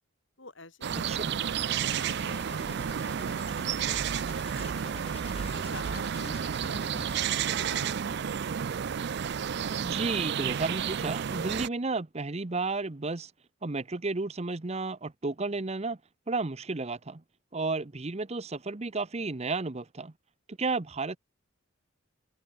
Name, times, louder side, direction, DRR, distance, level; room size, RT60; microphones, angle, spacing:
voice 1, 0.4-5.0 5.7-8.4, left 2 dB, 65° left, 6.4 m, -50 dB
sound 1, 0.8-11.7, right 8 dB, 55° right, 0.4 m, -31 dB
sound 2, 1.6-7.9, left 3 dB, 30° left, 4.5 m, -46 dB
voice 2, 9.8-13.3 13.6-16.0 16.3-17.2 17.5-20.1 20.5-21.2, right 3 dB, 30° right, 0.8 m, -32 dB
open air
head